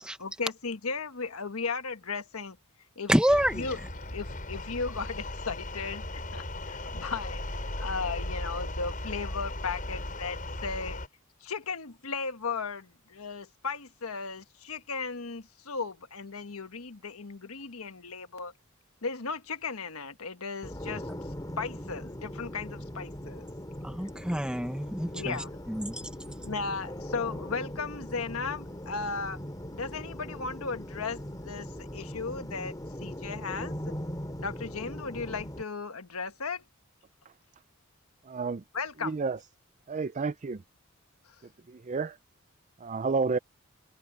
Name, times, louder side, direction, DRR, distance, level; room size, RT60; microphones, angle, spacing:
voice 1, 0.2-2.6 3.0-3.1 3.5-3.8 4.1-11.0 11.4-18.5 19.0-23.5 25.1-25.6 26.4-29.4 29.7-32.7 33.0-33.7 34.4-36.6 38.7-39.2 41.3-41.4, left 4 dB, 85° left, 1.4 m, -36 dB
voice 2, 3.1-3.6 23.8-25.4 25.7-26.1, equal, 5° right, 1.1 m, -27 dB
sound 1, 3.3-11.1, left 1 dB, 40° left, 7.4 m, -37 dB
sound 2, 20.6-35.6, equal, 20° left, 3.4 m, -40 dB
voice 3, 38.3-38.6 39.0-39.4 39.9-40.6 41.7-42.2 42.8-43.4, right 4 dB, 35° right, 0.4 m, -30 dB
head